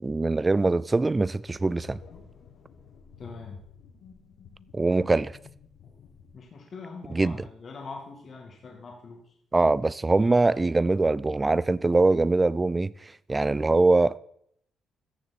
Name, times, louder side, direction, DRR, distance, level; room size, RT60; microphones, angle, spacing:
voice 1, 0.0-2.0 4.7-5.3 7.1-7.4 9.5-12.9 13.3-14.2, right 3 dB, 20° right, 0.3 m, -22 dB
sound 1, 1.4-6.4, left 6 dB, 75° left, 1.6 m, -51 dB
voice 2, 3.2-3.6 5.8-6.0 6.3-9.2, left 4 dB, 50° left, 2.1 m, -43 dB
14.0 x 7.1 x 4.2 m
cardioid pair, 90°, 0 cm